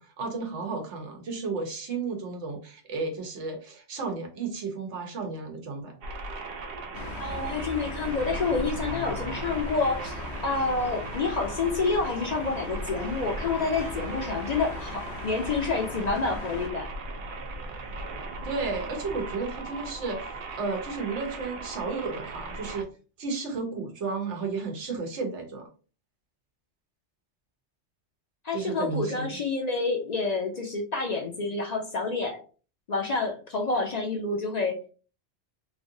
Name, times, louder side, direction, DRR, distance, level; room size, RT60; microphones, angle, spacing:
voice 1, 0.0-6.0 18.4-22.9 23.2-25.7 28.5-29.3, right 4 dB, 90° right, 3 dB, 1.1 m, -33 dB
sound 1, 6.0-22.8, right 2 dB, 65° right, 0.8 m, -38 dB
sound 2, 6.9-16.7, left 3 dB, 75° left, 0.9 m, -39 dB
voice 2, 7.2-16.9 28.4-32.4 32.9-34.9, left 4 dB, 50° left, 2 dB, 0.5 m, -28 dB
3.2 x 2.7 x 2.6 m, 0.37 s
omnidirectional pair, 1.1 m